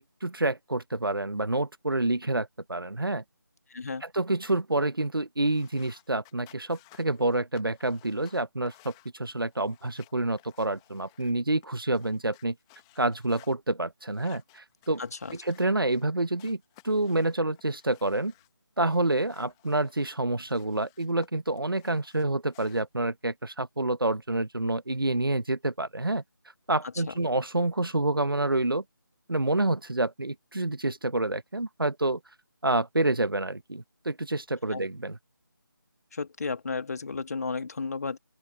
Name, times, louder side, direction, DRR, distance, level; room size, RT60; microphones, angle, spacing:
voice 1, 0.0-3.2 4.0-12.5 13.0-15.0 15.4-18.3 18.8-26.2 26.7-28.8 29.3-32.2 32.6-35.2, right 2 dB, 90° right, 1.1 m, -28 dB
voice 2, 3.7-4.0 15.0-15.4 34.7-34.8 36.1-38.2, left 4 dB, 45° left, 1.7 m, -33 dB
sound 1, 5.4-13.5 14.1-16.1 16.4-18.5 18.9-21.3 21.6-22.8, left 23 dB, 10° left, 1.6 m, -59 dB
open air
figure-of-eight pair, 160°, 11 cm